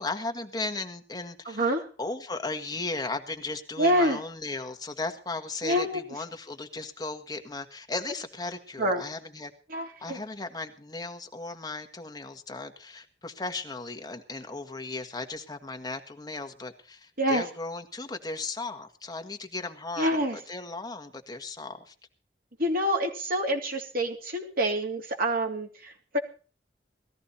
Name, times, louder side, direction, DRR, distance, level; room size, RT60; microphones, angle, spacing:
voice 1, 0.0-1.7 2.0-9.5 10.0-21.9, left 3 dB, 20° left, 5 dB, 1.7 m, -36 dB
voice 2, 1.4-1.8 3.8-4.2 5.6-6.0 8.8-9.0 9.7-10.2 17.2-17.4 20.0-20.4 22.6-26.2, equal, 55° right, 3 dB, 3.2 m, -27 dB
19.0 x 14.0 x 4.2 m, 0.38 s
head